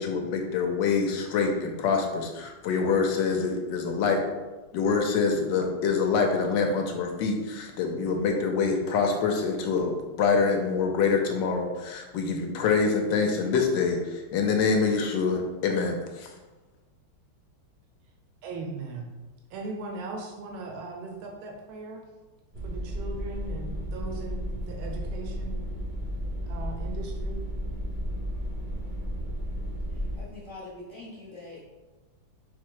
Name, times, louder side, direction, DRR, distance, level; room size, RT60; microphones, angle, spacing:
voice 1, 0.0-4.2 4.7-16.3, left 5 dB, 75° left, 3 dB, 1.1 m, -25 dB
voice 2, 18.4-19.1 19.5-22.0 22.6-25.6 26.5-27.4, right 3 dB, 85° right, 1 dB, 1.4 m, -38 dB
sound 1, 22.5-30.2, equal, 50° right, 0.5 m, -33 dB
voice 3, 30.2-31.6, left 2 dB, 45° left, -9 dB, 0.6 m, -43 dB
4.4 x 2.1 x 4.6 m, 1.2 s
omnidirectional pair, 2.2 m